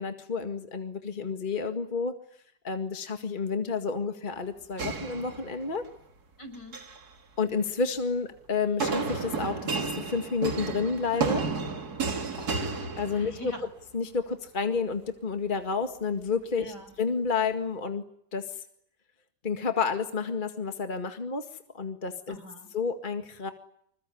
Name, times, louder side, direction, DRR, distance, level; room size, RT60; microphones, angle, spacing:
voice 1, 0.0-2.1 2.6-5.8 7.4-11.4 13.0-13.5 13.9-18.0 18.3-18.6 19.4-21.5 21.7-22.4 22.7-23.5, left 5 dB, 30° left, 6 dB, 2.1 m, -30 dB
sound 1, 4.8-5.9 6.5-7.0 8.8-13.6, right 4 dB, 65° right, 2.8 m, -32 dB
voice 2, 6.4-6.8 12.4-12.9 13.1-13.7 16.6-16.9 22.3-22.7, left 1 dB, 75° left, 6 dB, 6.7 m, -44 dB
26.5 x 21.5 x 9.9 m, 0.69 s
omnidirectional pair, 1.8 m